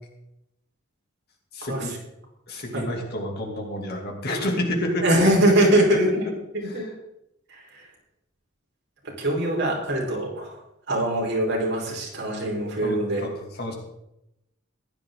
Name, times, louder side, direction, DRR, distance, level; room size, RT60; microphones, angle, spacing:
voice 1, 1.5-1.9 2.5-5.3 5.6-6.0 6.6-6.9 12.8-13.7, left 1 dB, 50° left, 1 dB, 2.8 m, -28 dB
voice 2, 5.0-6.3 6.5-6.9 7.5-7.8 9.2-10.6 10.9-13.2, right 1 dB, 55° right, -2 dB, 4.8 m, -23 dB
15.5 x 11.5 x 4.0 m, 0.86 s
head